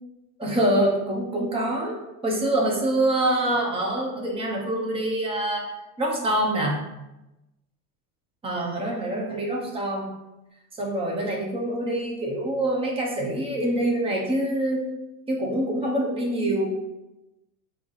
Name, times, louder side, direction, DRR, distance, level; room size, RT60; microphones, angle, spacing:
voice 1, 0.4-2.0 2.2-5.6 6.0-6.8 8.4-10.1 10.8-14.9 15.3-16.7, right 1 dB, 15° right, -1 dB, 0.7 m, -25 dB
4.5 x 2.7 x 3.8 m, 0.98 s
supercardioid pair, 155°, 41 cm